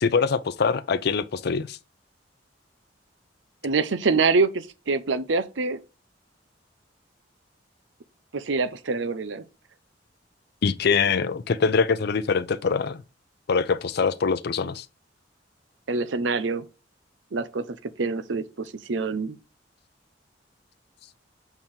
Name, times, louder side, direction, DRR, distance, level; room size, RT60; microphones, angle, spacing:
voice 1, 0.0-1.8 10.6-13.0 13.5-14.8, left 5 dB, 60° left, 0.5 m, -23 dB
voice 2, 3.6-5.8 8.3-9.4 15.9-16.7 17.3-17.6 18.0-19.4, right 4 dB, 90° right, 0.7 m, -25 dB
6.7 x 4.5 x 3.7 m
head